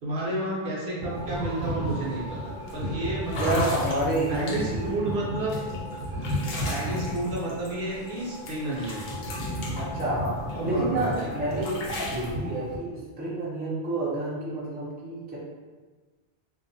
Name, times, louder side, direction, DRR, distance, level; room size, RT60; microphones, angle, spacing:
voice 1, 0.0-3.6 4.3-5.6 6.6-9.0 10.5-11.3, right 2 dB, 65° right, -5 dB, 0.8 m, -31 dB
sound 1, 1.0-12.8, equal, 90° right, 0.9 m, -33 dB
sound 2, 1.3-1.4 1.7-2.0 2.7-2.8 3.2-4.9 5.5-8.2 8.5-10.5 11.0-12.3, left 2 dB, 60° left, 0.6 m, -37 dB
voice 2, 3.4-5.0 6.8-6.9 9.7-15.4, right 1 dB, 10° right, -8 dB, 0.5 m, -29 dB
2.3 x 2.3 x 2.6 m, 1.3 s
omnidirectional pair, 1.1 m